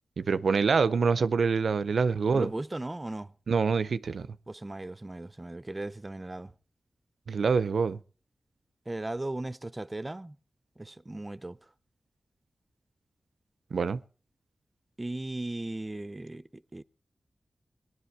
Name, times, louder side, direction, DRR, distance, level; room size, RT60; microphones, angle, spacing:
voice 1, 0.2-2.5 3.5-4.3 7.3-8.0 13.7-14.0, right 5 dB, 85° right, 0.6 m, -25 dB
voice 2, 2.3-3.3 4.5-6.5 8.9-10.4 10.8-11.6 15.0-16.8, right 2 dB, 25° right, 0.6 m, -37 dB
19.0 x 11.0 x 4.7 m
cardioid pair, 55°, 0 cm